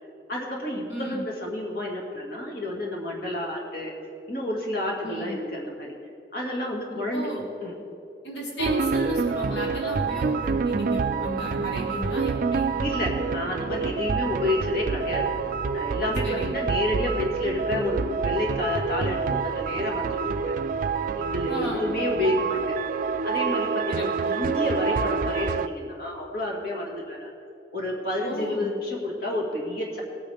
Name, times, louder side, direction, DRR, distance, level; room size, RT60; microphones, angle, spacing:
voice 1, 0.3-3.9 4.3-5.9 6.3-7.7 12.8-15.3 15.7-20.5 21.2-22.7 23.2-27.3 27.7-30.0, left 1 dB, 60° left, -1 dB, 2.2 m, -30 dB
voice 2, 0.9-1.3 5.0-5.4 6.9-7.4 8.2-12.7 16.2-16.6 21.5-21.9 23.9-24.4 28.2-28.7, equal, 85° left, -1 dB, 1.9 m, -35 dB
sound 1, 8.6-25.7, right 5 dB, 50° right, 0.4 m, -27 dB
19.0 x 9.0 x 3.5 m, 2.8 s
head